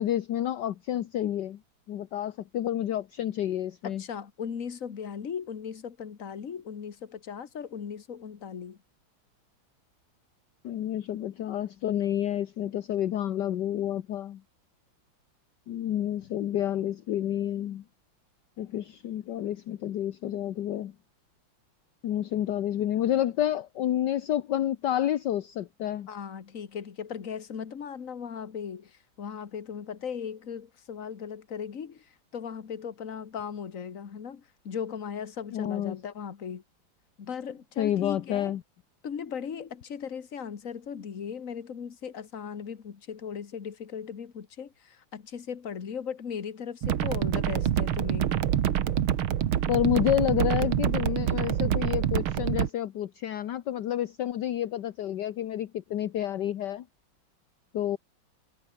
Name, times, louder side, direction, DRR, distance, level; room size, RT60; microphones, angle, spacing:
voice 1, 0.0-1.6 1.9-4.0 10.6-14.4 15.7-17.8 18.6-20.9 22.0-26.1 35.5-36.0 37.8-38.6 49.7-56.8 57.7-58.0, left 11 dB, 65° left, 1.5 m, -29 dB
voice 2, 3.8-8.8 26.1-36.6 37.2-38.6 39.0-48.4, left 7 dB, 45° left, 1.8 m, -38 dB
sound 1, 46.8-52.7, right 10 dB, 85° right, 2.1 m, -26 dB
omnidirectional pair, 2.2 m